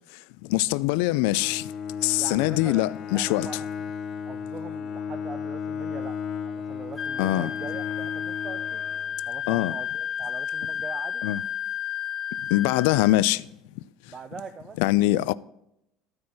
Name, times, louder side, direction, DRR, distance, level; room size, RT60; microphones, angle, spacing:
voice 1, 0.1-1.7 2.0-3.5 7.2-7.5 9.5-9.7 11.2-11.4 12.5-13.5 14.8-15.3, left 17 dB, 80° left, 0.3 m, -23 dB
Bowed string instrument, 1.3-9.5, left 6 dB, 40° left, 0.8 m, -35 dB
voice 2, 2.2-3.7 4.2-8.8 9.3-11.2 14.1-14.8, right 5 dB, 25° right, 0.4 m, -42 dB
Wind instrument woodwind instrument, 7.0-13.2, left 8 dB, 15° left, 1.3 m, -32 dB
13.0 x 4.4 x 6.3 m
cardioid pair, 145°, 0 cm